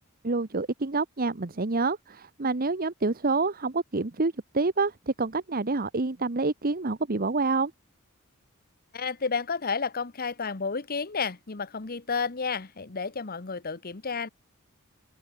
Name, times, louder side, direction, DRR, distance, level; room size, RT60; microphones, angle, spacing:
voice 1, 0.2-7.7, right 3 dB, 45° right, 1.0 m, -27 dB
voice 2, 8.9-14.3, left 5 dB, 45° left, 1.1 m, -31 dB
head